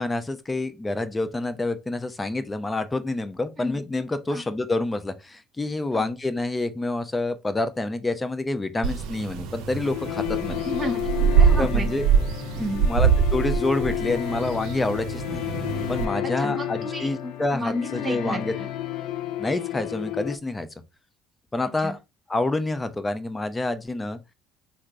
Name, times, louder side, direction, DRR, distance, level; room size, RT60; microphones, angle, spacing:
voice 1, 0.0-10.6 11.6-12.1 12.9-15.4 15.9-18.5 19.4-20.7 21.5-22.0 22.3-24.2, left 2 dB, 20° left, 0.6 m, -27 dB
sound 1, 8.8-16.1, right 7 dB, 70° right, 0.5 m, -24 dB
sound 2, 9.8-20.4, left 13 dB, 70° left, 0.3 m, -31 dB
voice 2, 10.7-11.9 12.6-12.9 16.2-18.7 21.8-22.0, equal, 20° right, 1.0 m, -32 dB
3.2 x 2.0 x 3.7 m
hypercardioid pair, 65°, 0 cm